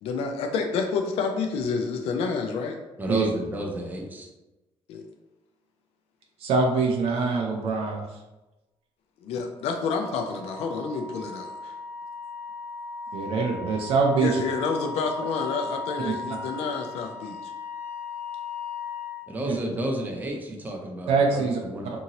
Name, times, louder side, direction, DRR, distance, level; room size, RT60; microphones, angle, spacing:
voice 1, 0.0-2.8 4.9-5.0 9.2-11.7 14.1-17.5, left 5 dB, 70° left, 3 dB, 0.4 m, -29 dB
voice 2, 3.0-4.3 19.3-21.9, right 1 dB, 15° right, 1 dB, 0.5 m, -31 dB
voice 3, 6.4-8.1 13.1-14.4 16.0-16.1 19.5-19.6 21.1-21.6, right 4 dB, 65° right, 1 dB, 0.5 m, -24 dB
Wind instrument woodwind instrument, 9.8-19.2, left 4 dB, 25° left, 0.8 m, -37 dB
2.8 x 2.6 x 2.8 m, 1.0 s
cardioid pair, 155°, 11 cm